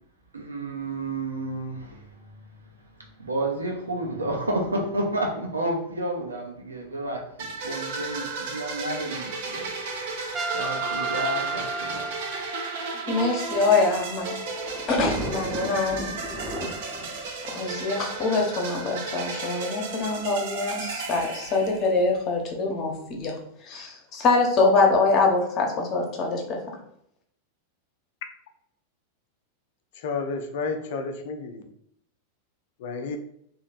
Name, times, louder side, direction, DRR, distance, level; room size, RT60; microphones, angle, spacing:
voice 1, 0.3-2.3 3.2-9.7 10.0-12.0, right 1 dB, 75° right, 0 dB, 0.9 m, -31 dB
sound 1, 7.4-22.2, right 4 dB, 50° right, 0.7 m, -34 dB
Trumpet, 10.3-13.0, right 3 dB, 25° right, 0.3 m, -32 dB
voice 2, 13.1-14.3 14.9-16.1 17.5-23.3 23.7-26.6, left 3 dB, 35° left, 1 dB, 1.0 m, -24 dB
Thunder, 13.5-18.8 19.7-19.8 20.0-20.1 21.2-21.5, equal, 10° left, 0.9 m, -35 dB
voice 3, 30.0-31.6 32.8-33.2, left 4 dB, 55° left, 6 dB, 0.5 m, -31 dB
3.1 x 2.7 x 4.1 m, 0.71 s
figure-of-eight pair, 90°, 0 cm